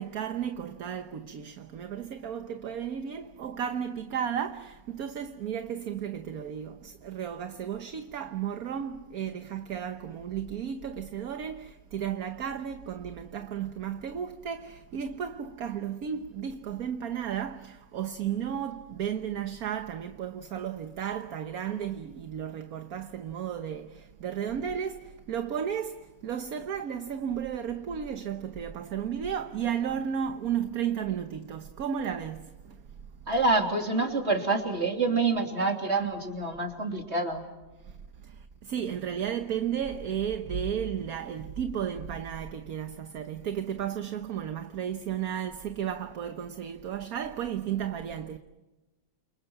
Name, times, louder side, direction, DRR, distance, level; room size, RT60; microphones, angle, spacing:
voice 1, 0.0-32.9 37.8-48.4, right 8 dB, 60° right, 1.4 m, -34 dB
voice 2, 33.3-37.4, right 3 dB, 35° right, 3.4 m, -27 dB
30.0 x 28.5 x 6.0 m
omnidirectional pair, 1.9 m